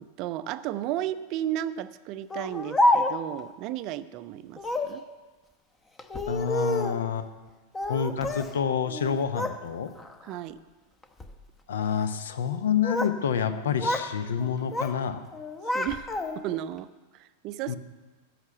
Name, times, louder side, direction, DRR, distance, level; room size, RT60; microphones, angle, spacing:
voice 1, 0.0-5.0 10.2-10.6 15.7-16.1 16.3-17.8, right 12 dB, 40° right, 14 dB, 0.5 m, -34 dB
Speech, 2.3-3.4 4.6-5.0 6.0-7.0 7.7-8.5 8.9-9.6 10.0-10.4 11.0-11.4 12.5-13.2 13.5-14.1 14.4-15.0 15.3-16.6, left 1 dB, 15° left, 0.8 m, -28 dB
voice 2, 6.3-7.3 7.9-9.9 11.7-15.2 17.7-17.8, left 7 dB, 60° left, 11 dB, 0.8 m, -28 dB
14.0 x 5.8 x 8.1 m, 1.3 s
figure-of-eight pair, 90°, 0 cm